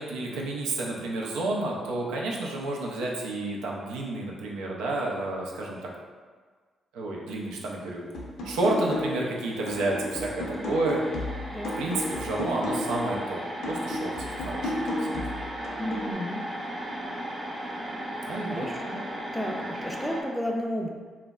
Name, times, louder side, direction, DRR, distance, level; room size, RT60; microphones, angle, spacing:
voice 1, 0.0-5.9 6.9-8.0 8.4-11.0 11.8-15.2 18.2-18.7, right 2 dB, 85° right, -2 dB, 0.4 m, -30 dB
sound 1, 8.1-9.3 9.7-13.2 13.6-16.1, left 1 dB, 75° left, 0.5 m, -33 dB
sound 2, 9.2-20.2, right 1 dB, 30° right, 0.7 m, -36 dB
voice 2, 15.8-16.5 18.4-19.0 19.3-20.9, equal, 5° left, 0 dB, 0.4 m, -32 dB
3.2 x 2.0 x 2.3 m, 1.5 s
supercardioid pair, 55°, 0 cm